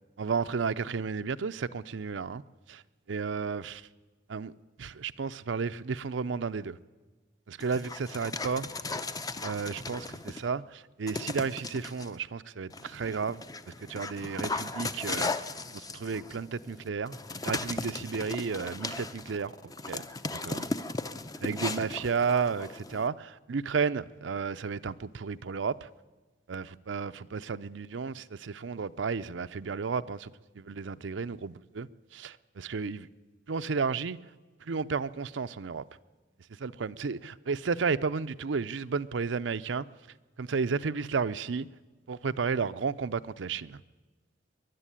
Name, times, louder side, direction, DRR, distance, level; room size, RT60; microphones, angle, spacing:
voice 1, 0.2-2.4 2.7-2.8 3.1-3.8 4.3-4.5 4.8-6.8 7.5-8.7 9.4-13.4 13.8-15.3 15.7-17.2 17.4-19.5 19.9-20.0 20.4-20.7 21.4-25.9 26.5-33.1 33.5-34.2 34.6-35.8 36.6-39.9 40.4-41.7 42.1-43.8, right 5 dB, 80° right, 0.6 m, -32 dB
Dog, 7.6-10.5 11.1-12.1 12.7-23.1, left 3 dB, 20° left, 0.7 m, -37 dB
23.0 x 11.5 x 9.9 m
head